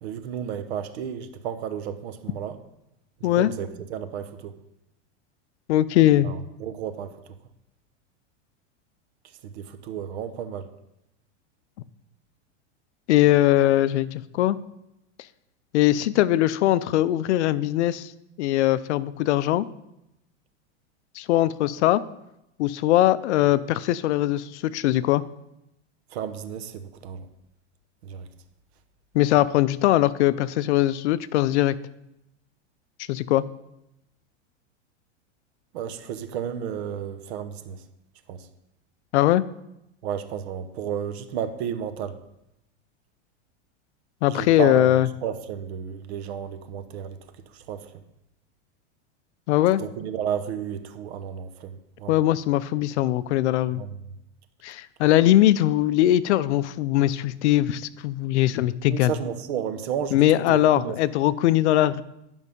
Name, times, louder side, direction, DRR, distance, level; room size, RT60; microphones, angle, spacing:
voice 1, 0.0-2.6 3.2-4.5 6.2-7.2 9.4-10.7 26.1-27.3 28.0-28.3 35.7-37.8 38.3-38.5 40.0-42.2 44.3-47.2 47.5-48.0 49.8-52.2 53.7-53.9 58.9-61.0, right 8 dB, 60° right, 10 dB, 1.0 m, -32 dB
voice 2, 5.7-6.3 13.1-14.6 15.7-18.1 18.4-19.7 21.2-22.0 22.6-25.2 29.1-31.7 33.1-33.4 39.1-39.4 44.2-45.1 49.5-49.8 52.1-53.8 54.6-59.1 60.1-62.0, left 14 dB, 70° left, 17 dB, 0.5 m, -21 dB
11.0 x 5.4 x 5.3 m, 0.85 s
supercardioid pair, 155°, 36 cm